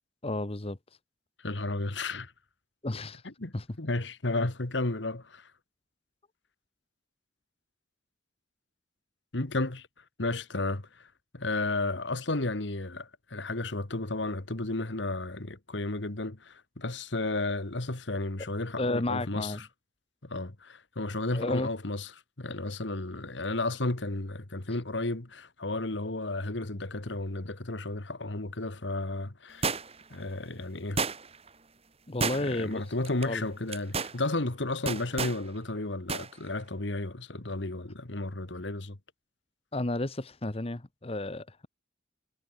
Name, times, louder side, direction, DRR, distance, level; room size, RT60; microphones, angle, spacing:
voice 1, 0.2-0.8 2.8-3.2 3.5-3.6 18.8-19.6 21.3-21.7 32.1-32.8 33.2-33.4 39.7-41.7, left 2 dB, 35° left, 1.1 m, -32 dB
voice 2, 1.4-2.3 3.2-5.5 9.3-9.9 10.2-11.1 11.3-19.7 20.3-22.1 22.4-29.7 30.1-31.0 32.3-39.0, left 2 dB, 75° left, 1.8 m, -33 dB
sound 1, 29.6-30.1 31.0-31.5 32.2-32.7 33.0-33.2 33.7-34.2 34.9-35.4 36.1-36.3 36.6-36.7, right 4 dB, 35° right, 3.2 m, -31 dB
head